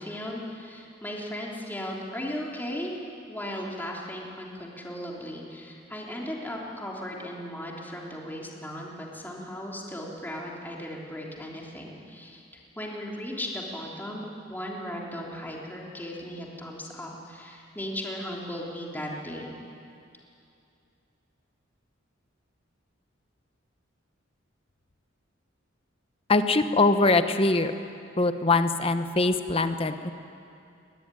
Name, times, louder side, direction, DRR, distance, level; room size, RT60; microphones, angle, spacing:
voice 1, 0.0-3.0 3.3-12.4 12.7-19.5, equal, 10° left, -2 dB, 3.4 m, -36 dB
voice 2, 26.3-27.7 28.2-30.1, left 3 dB, 30° left, 9 dB, 1.1 m, -22 dB
23.5 x 18.5 x 10.0 m, 2.6 s
head